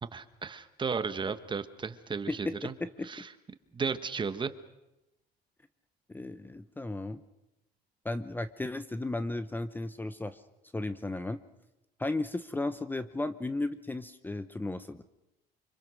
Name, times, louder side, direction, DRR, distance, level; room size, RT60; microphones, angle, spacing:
voice 1, 0.0-2.7 3.0-3.3 3.7-4.5, right 5 dB, 30° right, 11 dB, 1.3 m, -34 dB
voice 2, 2.3-3.1 6.1-7.2 8.0-10.4 10.7-11.4 12.0-15.0, left 2 dB, 10° left, 12 dB, 0.8 m, -35 dB
25.5 x 25.0 x 6.4 m, 0.93 s
cardioid pair, 110°, 17 cm